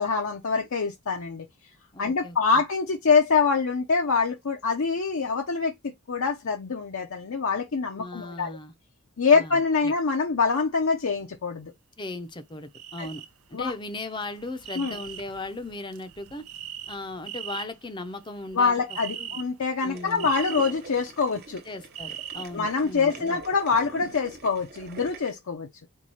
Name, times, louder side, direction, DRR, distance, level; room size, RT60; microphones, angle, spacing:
voice 1, 0.0-1.5 2.0-5.7 6.1-8.5 9.2-11.7 13.0-13.1 13.5-13.7 14.8-15.0 18.5-21.6 22.5-25.7, left 5 dB, 70° left, 0.6 m, -25 dB
voice 2, 1.9-2.6 8.0-8.7 9.3-9.9 12.0-13.2 13.5-16.4 16.9-19.4 19.8-20.3 21.7-23.4, left 2 dB, 20° left, 0.5 m, -37 dB
sound 1, 12.7-13.3 13.5-23.2, right 10 dB, 85° right, 0.7 m, -41 dB
sound 2, 19.9-25.3, right 2 dB, 45° right, 0.7 m, -44 dB
4.6 x 2.3 x 4.1 m
head